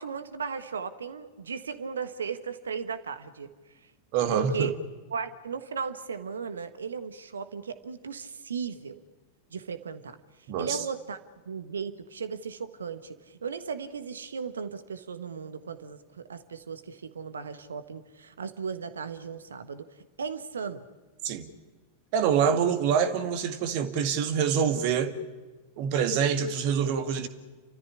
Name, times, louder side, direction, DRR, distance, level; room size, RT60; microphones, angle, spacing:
voice 1, 0.0-3.5 4.3-4.8 5.1-9.0 9.5-10.2 10.6-11.2 11.5-19.9 20.2-20.8, right 6 dB, 70° right, 1.4 m, -36 dB
voice 2, 4.1-4.7 10.5-10.8 21.2-21.5 22.1-25.2 25.8-27.3, right 7 dB, 45° right, 1.9 m, -26 dB
29.0 x 14.0 x 10.0 m
figure-of-eight pair, 90°, 0 cm